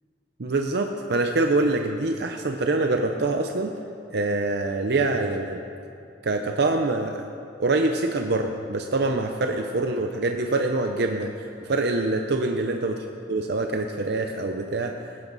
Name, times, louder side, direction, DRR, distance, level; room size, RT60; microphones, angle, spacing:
voice 1, 0.4-3.7 4.1-5.6 6.2-7.2 7.6-11.3 11.6-12.9 13.3-14.9, right 2 dB, 60° right, 4 dB, 0.7 m, -25 dB
19.0 x 11.0 x 4.1 m, 2.5 s
head